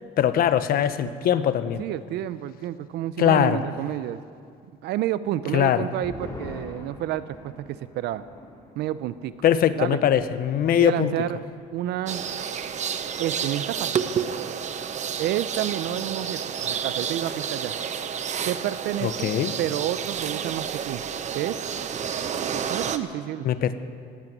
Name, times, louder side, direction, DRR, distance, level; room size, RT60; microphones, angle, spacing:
voice 1, 0.2-1.8 3.2-3.6 5.5-5.9 9.4-11.1 19.0-19.5 23.4-23.7, left 10 dB, 60° left, 12 dB, 0.9 m, -21 dB
voice 2, 1.8-4.2 4.8-8.2 8.8-9.3 9.8-10.0 10.8-11.5 11.7-12.2 13.2-14.0 15.2-17.8 18.5-19.3 19.6-21.0 21.3-21.6 22.7-23.5, right 12 dB, 80° right, 15 dB, 0.7 m, -29 dB
sound 1, 5.7-12.4 12.7-12.8 13.1-13.6, left 1 dB, 20° left, 2.6 m, -45 dB
sound 2, 12.1-23.0, right 7 dB, 45° right, 0.9 m, -30 dB
17.0 x 9.0 x 9.4 m, 2.2 s
cardioid pair, 110°, 17 cm